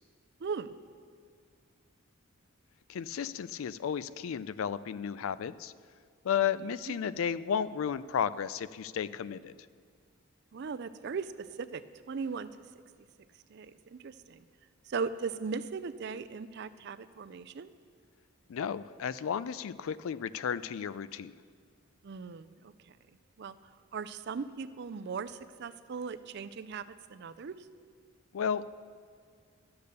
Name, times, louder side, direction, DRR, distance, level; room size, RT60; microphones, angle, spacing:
voice 1, 2.9-5.7 6.2-9.5 18.5-21.3 28.3-28.6, left 8 dB, 70° left, 16 dB, 0.3 m, -33 dB
voice 2, 10.5-11.8 12.1-12.5 13.5-14.4 14.9-17.7 22.0-22.7 23.4-23.6 23.9-26.8 27.1-27.6, right 5 dB, 50° right, 13 dB, 0.4 m, -38 dB
12.0 x 6.8 x 6.7 m, 2.1 s
head